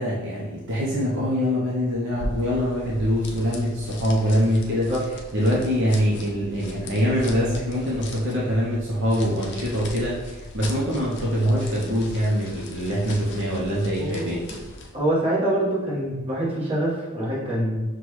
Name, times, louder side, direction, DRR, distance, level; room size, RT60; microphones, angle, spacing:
voice 1, 0.0-4.9 5.3-14.4, equal, 60° right, -6 dB, 0.7 m, -24 dB
sound 1, 2.1-15.0, left 2 dB, 55° left, 0.5 m, -39 dB
voice 2, 13.9-14.5 14.9-17.8, right 1 dB, 25° right, -7 dB, 1.4 m, -25 dB
5.8 x 2.3 x 3.1 m, 1.1 s
head